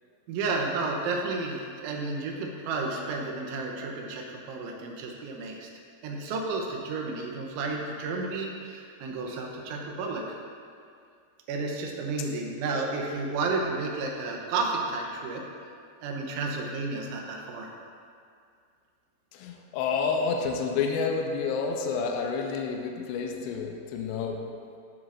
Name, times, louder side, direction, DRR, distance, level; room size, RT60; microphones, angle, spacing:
voice 1, 0.3-5.7 6.0-10.4 11.5-15.4 16.0-17.7, right 3 dB, 80° right, 1 dB, 3.3 m, -32 dB
voice 2, 19.3-24.4, left 5 dB, 85° left, 2 dB, 2.5 m, -29 dB
13.5 x 7.7 x 2.6 m, 2.3 s
omnidirectional pair, 5.5 m